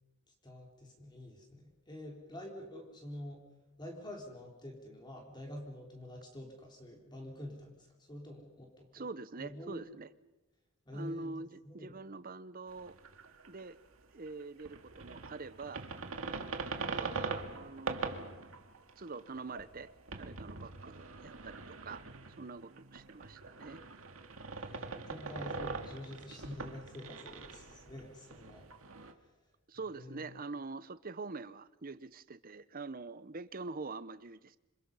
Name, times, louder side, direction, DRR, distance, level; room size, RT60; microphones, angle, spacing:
voice 1, 0.4-3.5 3.8-9.1 9.4-9.8 10.9-12.0 24.5-28.7 29.9-30.4, left 1 dB, 20° left, 0 dB, 4.4 m, -47 dB
voice 2, 8.9-10.1 10.9-13.0 13.5-13.8 14.1-15.8 16.8-18.3 19.0-19.9 20.2-22.0 22.4-23.8 29.7-34.6, right 3 dB, 45° right, 15 dB, 0.9 m, -45 dB
sound 1, 12.7-14.0 14.3-29.1, right 4 dB, 75° right, 2.0 m, -43 dB
27.5 x 26.5 x 5.6 m, 1.0 s
head